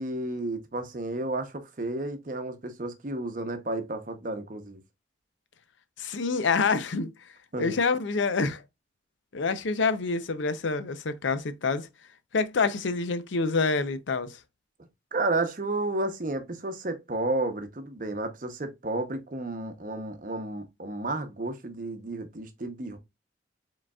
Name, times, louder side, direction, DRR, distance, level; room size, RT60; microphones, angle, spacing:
voice 1, 0.0-4.8 7.5-7.8 15.1-23.0, right 2 dB, 45° right, 0.7 m, -32 dB
voice 2, 6.0-8.6 9.3-11.9 12.3-14.4, left 4 dB, 85° left, 0.6 m, -27 dB
4.9 x 3.9 x 2.3 m
head